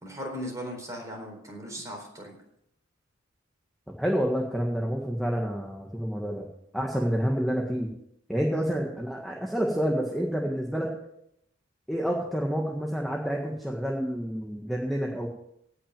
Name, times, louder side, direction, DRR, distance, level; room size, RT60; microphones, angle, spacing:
voice 1, 0.0-2.4 8.5-8.7, equal, 15° right, 1 dB, 4.1 m, -38 dB
voice 2, 3.9-6.4 6.7-7.9 8.3-10.9 11.9-15.3, equal, ahead, -1 dB, 1.6 m, -28 dB
18.0 x 6.2 x 7.5 m, 0.76 s
head